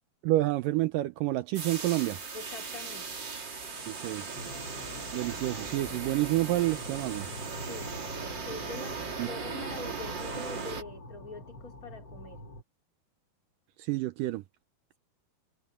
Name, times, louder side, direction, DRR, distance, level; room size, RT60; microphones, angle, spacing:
voice 1, 0.2-2.2 3.9-4.2 5.1-7.3 9.2-9.3 13.8-14.4, right 17 dB, 85° right, 1.9 m, -29 dB
sound 1, 1.5-10.8, right 4 dB, 30° right, 2.8 m, -38 dB
voice 2, 2.3-3.1 4.2-4.5 7.6-12.4, left 3 dB, 20° left, 3.8 m, -44 dB
sound 2, 4.3-12.6, left 2 dB, 40° left, 1.6 m, -46 dB
omnidirectional pair, 4.6 m